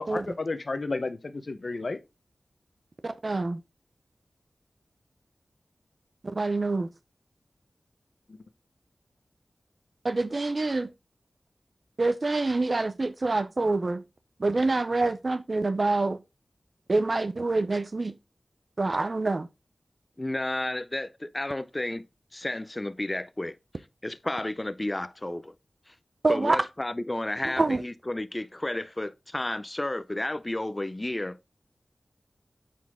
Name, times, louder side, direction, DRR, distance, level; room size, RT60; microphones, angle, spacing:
voice 1, 0.0-2.0 8.3-8.4, left 3 dB, 65° left, 0.9 m, -32 dB
voice 2, 3.0-3.6 6.2-6.9 10.0-10.9 12.0-14.0 14.4-16.2 16.9-18.1 18.8-19.5 26.2-26.6 27.4-27.8, right 3 dB, 55° right, 0.6 m, -26 dB
voice 3, 20.2-22.1 22.3-23.6 24.0-25.5 25.9-26.0 26.3-31.4, left 1 dB, 30° left, 0.5 m, -32 dB
7.5 x 4.3 x 3.6 m
wide cardioid pair, 50°, 0 cm